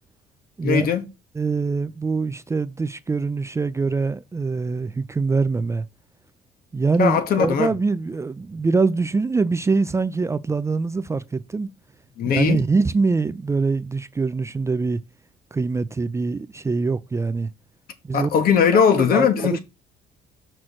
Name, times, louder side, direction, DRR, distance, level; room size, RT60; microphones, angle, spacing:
voice 1, 0.6-1.0 7.0-7.7 12.2-12.6 18.1-19.6, left 7 dB, 60° left, 1.5 m, -19 dB
voice 2, 1.3-5.8 6.7-11.7 12.3-15.0 15.5-17.5 18.1-18.3 18.7-19.6, right 4 dB, 15° right, 0.4 m, -23 dB
6.3 x 4.4 x 6.3 m
cardioid pair, 110°, 17 cm